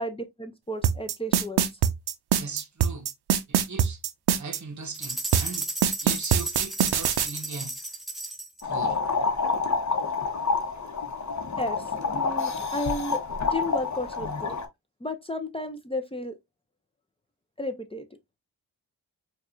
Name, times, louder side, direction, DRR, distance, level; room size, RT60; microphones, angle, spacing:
voice 1, 0.0-1.7 11.6-11.8 12.1-13.2 13.5-14.6 15.0-16.4 17.6-18.0, left 1 dB, 15° left, 0.6 m, -33 dB
sound 1, 0.8-4.6 5.3-7.3, right 9 dB, 85° right, 0.5 m, -22 dB
voice 2, 2.4-3.1 3.5-4.0 4.4-7.7 8.6-9.0, right 4 dB, 50° right, 0.9 m, -39 dB
sound 2, 4.9-8.6, right 2 dB, ahead, 0.9 m, -34 dB
sound 3, 8.6-14.7, left 4 dB, 50° left, 0.9 m, -28 dB
4.6 x 2.4 x 2.5 m
cardioid pair, 50°, 38 cm